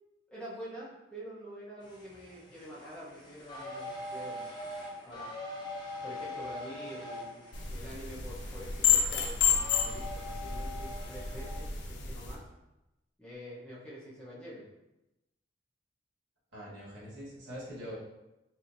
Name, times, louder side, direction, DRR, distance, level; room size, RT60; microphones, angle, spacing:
voice 1, 0.3-4.4 5.0-5.3 6.0-7.4 7.7-12.4 13.2-14.6, equal, 5° left, -9 dB, 0.9 m, -46 dB
sound 1, 1.8-11.8, left 1 dB, 25° left, 0.7 m, -43 dB
sound 2, 7.5-12.4, left 7 dB, 65° left, 0.6 m, -30 dB
voice 2, 16.5-18.0, equal, 70° right, -7 dB, 1.5 m, -43 dB
4.3 x 2.8 x 2.6 m, 0.94 s
head